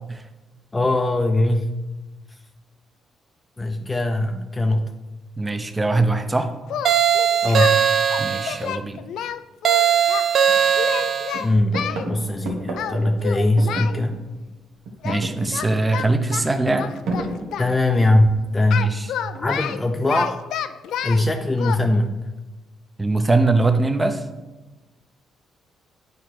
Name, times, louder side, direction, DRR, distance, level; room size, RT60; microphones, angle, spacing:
voice 1, 0.7-1.8 3.6-4.9 7.4-7.8 11.4-14.2 17.6-19.0 19.4-20.4 21.0-22.2, left 1 dB, 20° left, 5 dB, 0.5 m, -21 dB
voice 2, 5.4-6.5 8.2-9.0 15.0-16.9 18.8-19.1 23.0-24.3, right 2 dB, 20° right, 8 dB, 0.7 m, -22 dB
Singing, 6.7-7.8 8.1-10.2 10.7-12.1 12.8-13.0 13.2-14.0 15.0-15.2 15.5-17.7 18.7-21.2 21.6-21.8, left 9 dB, 80° left, 0.3 m, -29 dB
sound 1, 6.8-8.6 9.6-11.4, right 8 dB, 60° right, 0.5 m, -19 dB
sound 2, 9.9-10.0 10.5-11.0 11.3-14.5 14.8-18.4 19.3-19.8, right 2 dB, 85° right, 1.0 m, -33 dB
8.5 x 4.5 x 4.7 m, 1.1 s
cardioid pair, 90°, 0 cm